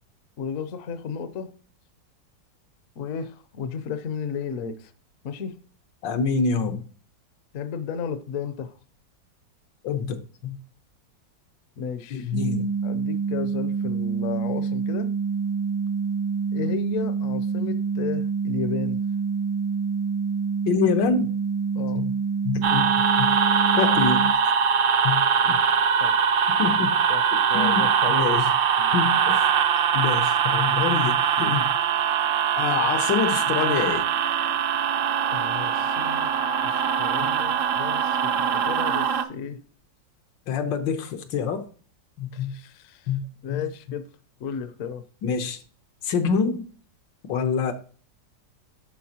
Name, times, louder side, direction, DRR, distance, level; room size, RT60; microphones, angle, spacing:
voice 1, 0.4-1.5 3.0-4.9 5.2-5.6 7.5-8.7 11.8-12.3 12.8-15.1 16.5-19.0 21.7-22.0 25.4-25.7 26.0-26.2 27.1-28.3 28.8-28.9 35.3-36.3 36.6-39.6 42.3-43.1 43.4-44.1 44.4-45.0, left 6 dB, 60° left, 0.9 m, -33 dB
voice 2, 6.0-6.8 9.8-10.6 12.1-12.7 20.7-21.3 22.0-22.1 22.4-22.9 23.2-23.3 23.8-24.3 25.0-25.2 25.5-25.6 26.6-27.0 27.3-28.5 28.9-29.5 29.9-31.7 32.6-34.1 37.2-37.3 40.5-41.7 42.2-42.5 43.1-43.2 43.5-43.6 45.2-45.6 46.0-46.7 47.3-47.7, left 6 dB, 80° left, 1.6 m, -26 dB
sound 1, 12.3-24.3, right 5 dB, 80° right, 1.3 m, -27 dB
sound 2, 22.6-39.2, right 7 dB, 65° right, 0.8 m, -22 dB
11.5 x 4.2 x 2.8 m
omnidirectional pair, 2.0 m